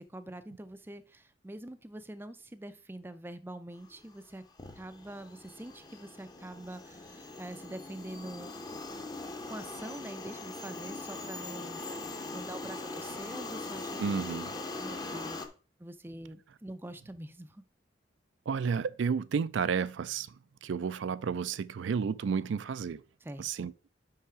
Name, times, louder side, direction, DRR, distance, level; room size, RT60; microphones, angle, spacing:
voice 1, 0.0-4.4 4.7-8.5 9.4-12.0 12.3-14.0 14.8-15.4 15.8-17.6 23.2-23.7, right 1 dB, 10° right, 0.4 m, -45 dB
sound 1, 4.1-4.3 4.6-15.5, left 2 dB, 20° left, 0.8 m, -41 dB
voice 2, 14.0-14.5 18.5-20.3 20.6-23.0 23.4-23.7, right 6 dB, 80° right, 0.4 m, -31 dB
5.6 x 5.6 x 4.9 m
head